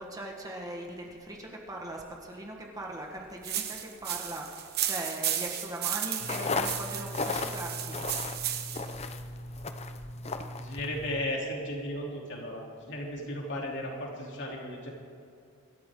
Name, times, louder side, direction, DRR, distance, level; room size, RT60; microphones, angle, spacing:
voice 1, 0.0-8.1, right 1 dB, 15° right, 0 dB, 1.4 m, -40 dB
sound 1, 3.4-8.9, right 10 dB, 45° right, 1.2 m, -34 dB
sound 2, 6.2-11.3, left 3 dB, 30° left, 0.7 m, -35 dB
voice 2, 10.6-14.9, left 1 dB, 55° left, -2 dB, 3.2 m, -35 dB
24.5 x 13.5 x 3.8 m, 2.6 s
head